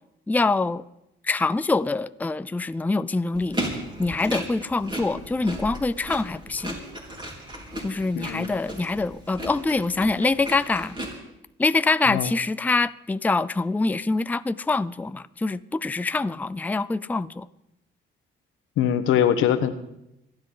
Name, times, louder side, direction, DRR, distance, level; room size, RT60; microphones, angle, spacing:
voice 1, 0.3-0.8 1.2-6.8 7.8-11.0 11.6-17.5, left 3 dB, 10° left, 0.4 m, -25 dB
sound 1, 3.3-11.1, right 1 dB, 25° right, 4.1 m, -35 dB
voice 2, 8.1-8.5 12.1-12.3 18.8-19.7, left 9 dB, 90° left, 1.1 m, -22 dB
26.5 x 10.5 x 3.9 m
cardioid pair, 90°, 20 cm